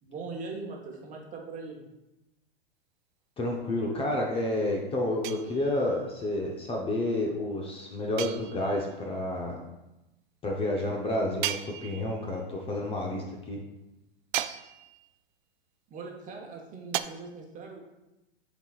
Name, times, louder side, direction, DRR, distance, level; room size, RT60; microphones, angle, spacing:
voice 1, 0.0-1.8 15.9-17.8, right 3 dB, 25° right, 0 dB, 1.2 m, -40 dB
voice 2, 3.4-9.6 10.4-13.6, left 1 dB, 20° left, -1 dB, 0.8 m, -30 dB
sound 1, 5.2-6.0 8.2-9.0 11.4-12.3 14.3-15.1 16.9-17.0, right 13 dB, 50° right, 0.4 m, -35 dB
10.0 x 4.2 x 2.4 m, 0.97 s
hypercardioid pair, 115°, 31 cm